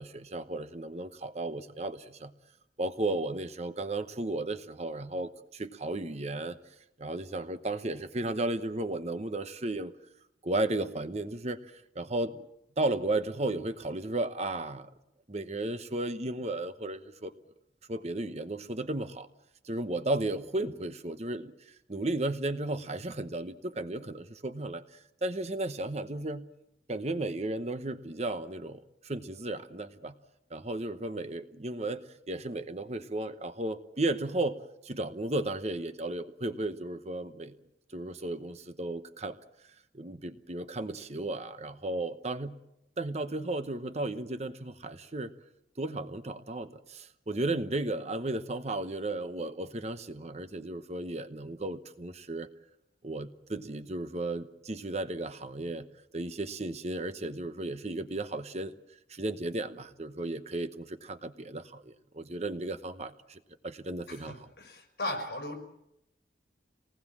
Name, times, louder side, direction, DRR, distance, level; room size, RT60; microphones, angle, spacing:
voice 1, 0.0-2.3 2.8-6.6 7.0-9.9 10.4-12.5 12.8-14.9 15.3-17.3 17.9-19.3 19.6-21.5 21.9-26.5 26.9-30.2 30.5-34.6 34.8-37.5 37.9-39.3 39.9-42.6 43.0-45.3 45.8-52.5 53.0-55.9 56.1-58.7 59.1-64.5, right 2 dB, 35° right, 10 dB, 1.0 m, -34 dB
voice 2, 64.1-65.6, left 1 dB, 60° left, 4 dB, 5.3 m, -37 dB
26.5 x 19.5 x 7.4 m, 0.84 s
head